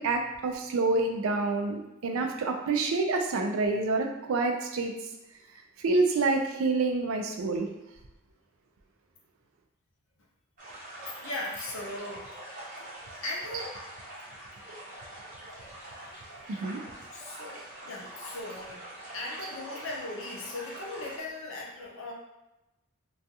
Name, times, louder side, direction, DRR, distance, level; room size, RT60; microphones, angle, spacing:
voice 1, 0.0-4.9 5.8-7.7 13.5-13.7 16.5-16.8 19.4-19.5, right 3 dB, 65° right, 3 dB, 0.3 m, -27 dB
sound 1, 10.6-21.2, right 1 dB, 35° right, 0.7 m, -44 dB
voice 2, 11.2-12.3 13.2-13.7 17.1-18.8 19.1-22.1, left 2 dB, 60° left, -2 dB, 0.5 m, -38 dB
2.3 x 2.3 x 2.7 m, 0.94 s
head